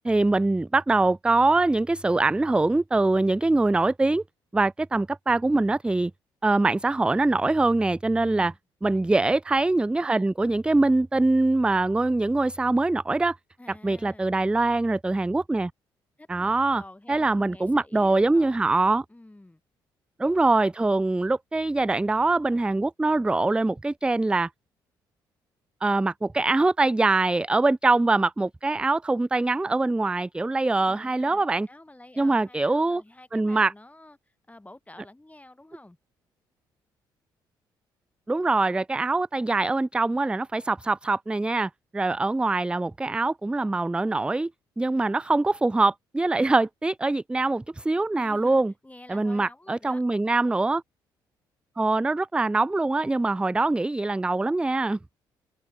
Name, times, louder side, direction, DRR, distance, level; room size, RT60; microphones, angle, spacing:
voice 1, 0.0-4.2 4.5-6.1 6.4-8.5 8.8-13.4 13.7-15.7 16.3-19.0 20.2-24.5 25.8-31.7 32.2-33.0 33.3-33.7 38.3-44.5 44.8-48.7 49.1-50.8 51.8-55.0, right 2 dB, 10° right, 0.3 m, -23 dB
voice 2, 8.1-8.6 13.6-14.3 16.2-18.7 19.1-19.6 30.8-36.0 48.1-50.0, left 1 dB, 15° left, 6.1 m, -49 dB
open air
hypercardioid pair, 50°, 11 cm